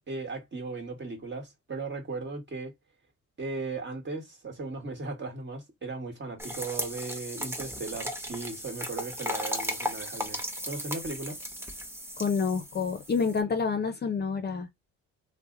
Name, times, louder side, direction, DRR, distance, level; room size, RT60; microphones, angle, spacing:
voice 1, 0.1-2.7 3.4-11.4, right 3 dB, 35° right, 1.3 m, -37 dB
sound 1, 6.4-13.4, equal, 10° right, 0.8 m, -36 dB
voice 2, 12.2-14.7, left 5 dB, 35° left, 0.5 m, -28 dB
2.8 x 2.1 x 3.6 m
cardioid pair, 90°, 30 cm